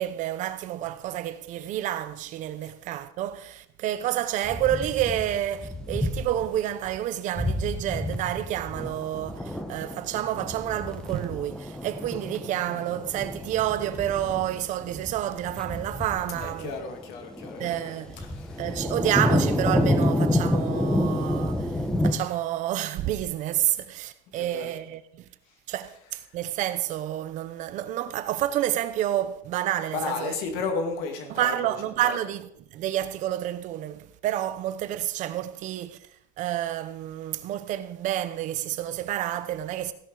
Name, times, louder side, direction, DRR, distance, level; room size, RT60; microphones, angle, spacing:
voice 1, 0.0-16.7 17.6-18.2 18.6-25.2 25.7-30.4 31.3-36.1 36.4-39.9, right 12 dB, 40° right, 0.8 m, -29 dB
sound 1, 4.4-6.5 6.9-7.0 7.4-22.1, left 1 dB, 5° left, 1.0 m, -29 dB
voice 2, 16.4-17.9 18.2-18.7 24.4-24.7 29.9-31.7 32.0-32.2, left 4 dB, 60° left, 2.1 m, -33 dB
16.0 x 11.0 x 4.0 m
cardioid pair, 170°, 19 cm